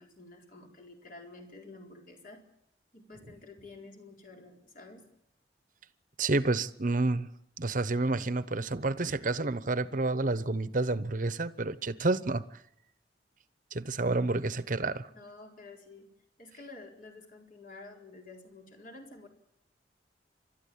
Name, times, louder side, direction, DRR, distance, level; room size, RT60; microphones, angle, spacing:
voice 1, 0.0-2.5 2.9-5.1 15.1-16.1 16.4-19.3, left 3 dB, 50° left, 2 dB, 4.4 m, -50 dB
voice 2, 6.2-7.3 7.6-12.4 13.7-15.1, right 2 dB, 50° right, 15 dB, 1.0 m, -29 dB
29.5 x 13.0 x 8.7 m, 0.81 s
head